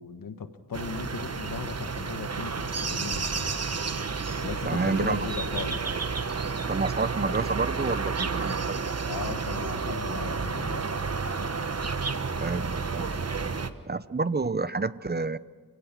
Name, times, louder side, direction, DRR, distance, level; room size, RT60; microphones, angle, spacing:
voice 1, 0.0-3.5 4.4-5.9 9.1-10.9, left 5 dB, 85° left, 9 dB, 1.5 m, -37 dB
sound 1, 0.7-13.7, right 4 dB, 50° right, 1.2 m, -31 dB
voice 2, 4.6-5.3 6.7-8.8 12.1-13.1 13.9-15.4, right 3 dB, 30° right, 16 dB, 0.7 m, -29 dB
29.0 x 17.0 x 6.0 m, 1.5 s
cardioid pair, 50°, 33 cm